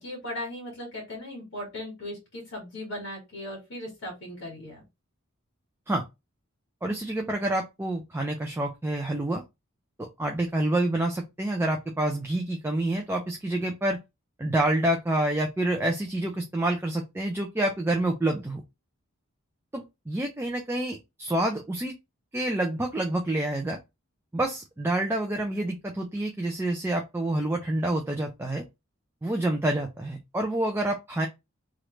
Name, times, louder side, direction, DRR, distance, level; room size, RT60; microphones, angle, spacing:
voice 1, 0.0-4.8, left 1 dB, 60° left, 1.6 m, -38 dB
voice 2, 6.8-9.4 10.0-14.0 14.4-18.6 19.7-21.9 22.3-23.8 24.3-28.6 29.2-31.3, right 1 dB, 10° right, 0.3 m, -28 dB
3.1 x 2.4 x 3.1 m
head